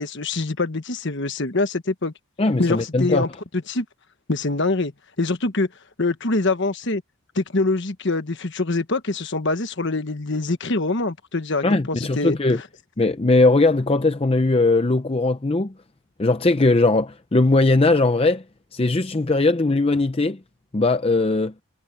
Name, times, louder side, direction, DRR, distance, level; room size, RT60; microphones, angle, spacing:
voice 1, 0.0-2.1 2.6-3.8 4.3-4.9 5.2-5.7 6.0-7.0 7.3-12.4, left 2 dB, 50° left, 1.3 m, -24 dB
voice 2, 2.4-3.3 11.6-12.6 13.0-15.7 16.2-18.4 18.7-20.4 20.7-21.5, left 2 dB, 25° left, 0.5 m, -19 dB
head